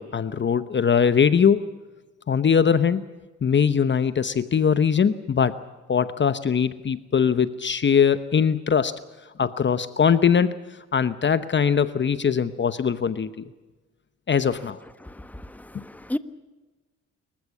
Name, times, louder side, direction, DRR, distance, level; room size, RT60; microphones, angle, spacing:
voice 1, 0.0-1.6 2.3-3.0 3.4-5.6 5.9-8.9 9.4-10.5 10.9-13.5 14.3-14.8, left 7 dB, 40° left, 13 dB, 1.0 m, -21 dB
voice 2, 15.0-16.2, left 1 dB, 5° left, 12 dB, 1.2 m, -34 dB
25.5 x 15.0 x 8.5 m, 1.2 s
cardioid pair, 80°, 30 cm